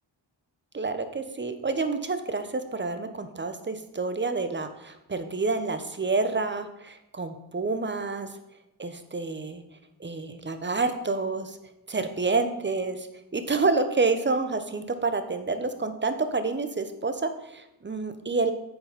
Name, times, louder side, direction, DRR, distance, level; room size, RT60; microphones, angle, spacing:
voice 1, 0.7-8.3 8.8-9.6 10.0-11.6 11.9-13.1 13.3-18.5, right 3 dB, 25° right, 9 dB, 0.9 m, -28 dB
7.7 x 4.7 x 5.2 m, 0.90 s
cardioid pair, 55°, 44 cm